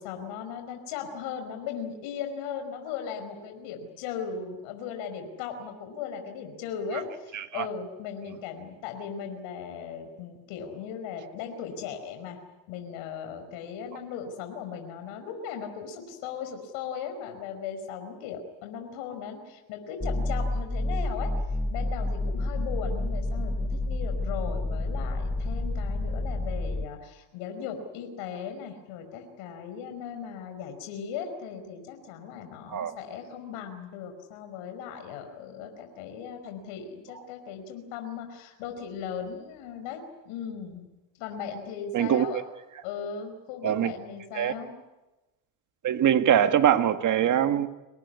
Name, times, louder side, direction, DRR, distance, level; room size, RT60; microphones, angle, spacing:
voice 1, 0.0-12.4 12.7-21.3 21.7-40.9 41.2-42.4 42.8-44.7, left 7 dB, 75° left, 6 dB, 5.2 m, -38 dB
voice 2, 7.3-7.6 32.7-32.9 41.9-42.4 43.6-43.9 44.3-44.5 45.8-47.7, right 10 dB, 40° right, 8 dB, 1.8 m, -23 dB
sound 1, 20.0-26.9, left 2 dB, 10° left, 1.3 m, -29 dB
26.0 x 19.5 x 9.8 m, 1.1 s
supercardioid pair, 125°, 48 cm